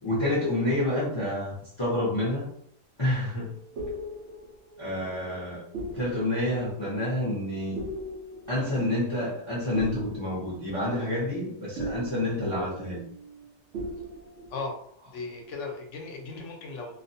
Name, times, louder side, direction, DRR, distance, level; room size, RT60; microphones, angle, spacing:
voice 1, 0.0-2.5 3.0-3.5 4.8-5.6 5.9-7.8 8.5-13.0, left 1 dB, 40° left, -6 dB, 0.4 m, -28 dB
sound 1, 3.4-13.5 13.7-14.6, right 1 dB, 65° right, 0.7 m, -40 dB
voice 2, 15.1-17.0, left 3 dB, 65° left, 2 dB, 0.8 m, -37 dB
2.4 x 2.2 x 2.6 m, 0.66 s
omnidirectional pair, 1.6 m